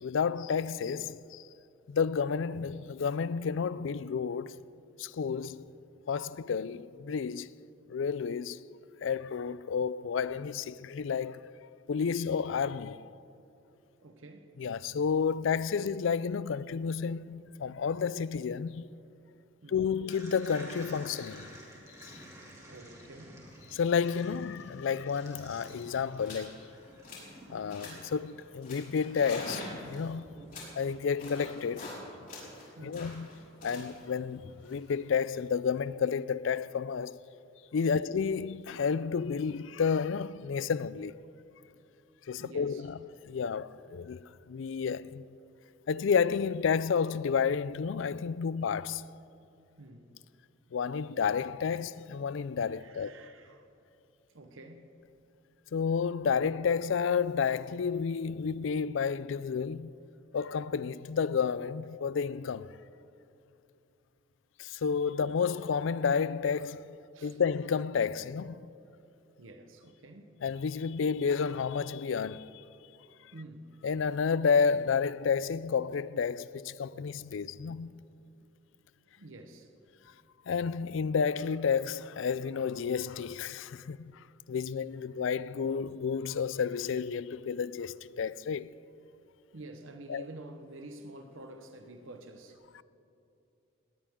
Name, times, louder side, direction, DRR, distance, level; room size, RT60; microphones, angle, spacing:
voice 1, 0.0-1.4 1.9-4.6 5.0-5.6 6.1-7.5 7.9-8.6 9.0-11.5 11.9-13.0 14.6-18.8 19.7-21.5 22.0-22.2 23.7-26.6 27.5-30.3 30.8-31.9 32.8-37.2 37.7-41.1 42.3-43.0 43.2-45.2 45.9-49.0 50.7-53.2 55.7-59.9 60.3-62.8 64.6-67.0 67.2-68.7 70.4-72.5 73.8-78.0 80.5-84.1 84.5-88.7 90.1-90.3, left 6 dB, 70° left, 0.4 m, -31 dB
voice 2, 14.0-14.5 19.6-19.8 22.4-23.4 30.4-30.6 32.8-33.0 37.9-38.1 42.4-42.9 49.8-50.1 52.7-53.7 54.3-54.9 67.1-67.4 69.4-70.3 73.3-73.7 79.2-79.7 89.5-92.6, right 2 dB, 80° right, 1.0 m, -49 dB
sound 1, 20.1-28.7, right 1 dB, 15° right, 2.8 m, -51 dB
sound 2, 25.5-25.7 26.2-26.5 26.8-27.4 27.7-28.1 28.6-32.0 32.3-35.3, left 2 dB, 45° left, 4.9 m, -45 dB
19.5 x 18.5 x 3.7 m
head